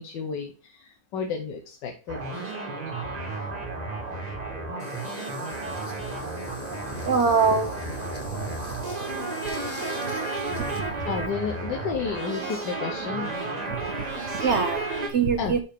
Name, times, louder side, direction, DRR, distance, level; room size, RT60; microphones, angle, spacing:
voice 1, 0.0-2.2 11.0-13.3 15.4-15.6, left 6 dB, 85° left, 4 dB, 1.6 m, -32 dB
sound 1, 2.1-15.1, right 3 dB, 25° right, 1.4 m, -32 dB
sound 2, 4.8-10.8, left 3 dB, 35° left, 1.3 m, -42 dB
voice 2, 6.9-7.9 8.5-8.6 8.8-9.0 10.1-10.2 10.6-11.1 13.8-14.0 14.3-15.6, right 5 dB, 55° right, 7 dB, 0.8 m, -25 dB
11.0 x 4.3 x 3.6 m, 0.36 s
omnidirectional pair, 1.9 m